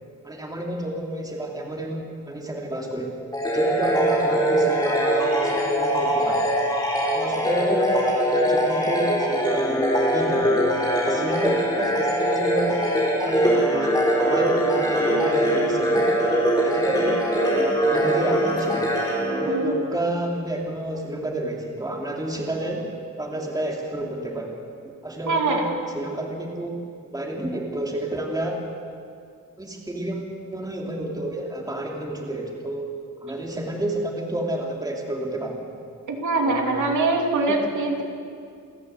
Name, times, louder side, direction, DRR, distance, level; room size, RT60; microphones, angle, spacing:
voice 1, 0.2-3.2 3.5-6.6 7.1-10.7 11.0-16.2 16.5-18.9 19.2-24.6 25.0-26.9 27.1-28.7 29.6-32.9 33.2-35.7 36.3-36.9 37.5-37.7, right 1 dB, 10° right, -1 dB, 2.6 m, -30 dB
sound 1, 3.3-20.1, equal, 10° left, 4.7 m, -22 dB
voice 2, 25.2-25.6 36.1-38.0, right 3 dB, 70° right, 1 dB, 2.9 m, -23 dB
28.5 x 11.5 x 8.0 m, 2.3 s
wide cardioid pair, 160°, 31 cm